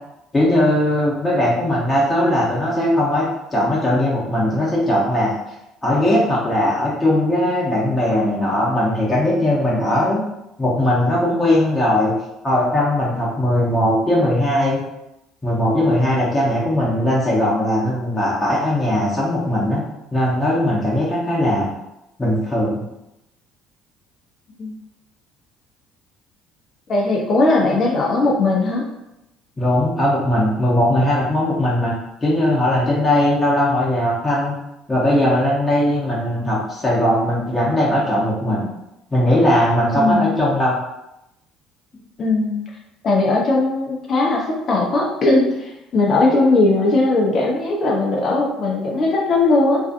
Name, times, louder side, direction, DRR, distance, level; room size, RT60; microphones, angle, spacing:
voice 1, 0.3-5.3 5.8-10.2 10.6-12.1 12.4-14.8 15.4-19.8 20.1-21.7 22.2-22.8 29.6-31.9 32.2-34.5 34.9-38.7 39.1-40.8, left 1 dB, 20° left, -6 dB, 0.8 m, -19 dB
voice 2, 26.9-28.8 40.0-40.4 42.2-42.6 43.0-49.8, left 2 dB, 45° left, -2 dB, 0.7 m, -18 dB
2.6 x 2.3 x 2.5 m, 0.88 s
hypercardioid pair, 60°, 0 cm